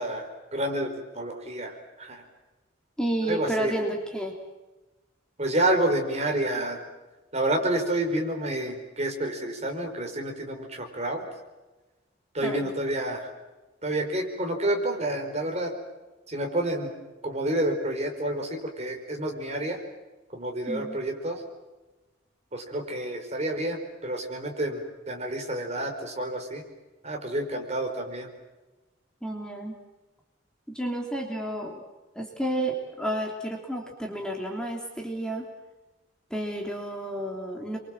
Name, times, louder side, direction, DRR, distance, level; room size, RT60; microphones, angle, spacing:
voice 1, 0.0-2.2 3.3-3.7 5.4-6.8 7.3-11.2 12.3-13.3 13.8-15.7 16.3-16.9 17.2-19.8 20.3-21.4 22.5-26.6 27.0-28.3, right 1 dB, 35° right, 3 dB, 4.8 m, -29 dB
voice 2, 3.0-4.3 12.4-12.7 20.7-21.0 29.2-29.7 30.7-31.8 32.1-35.5 36.3-37.8, right 1 dB, 5° left, 1 dB, 3.1 m, -31 dB
29.5 x 24.0 x 7.6 m, 1.1 s
head